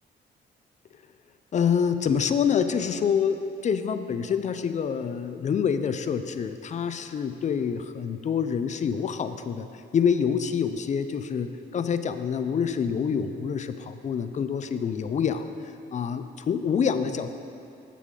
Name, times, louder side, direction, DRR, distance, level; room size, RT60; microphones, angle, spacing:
voice 1, 1.5-9.7 9.9-15.5 15.9-17.3, left 7 dB, 35° left, 10 dB, 0.4 m, -26 dB
8.3 x 7.1 x 3.7 m, 2.6 s
cardioid pair, 90°, 20 cm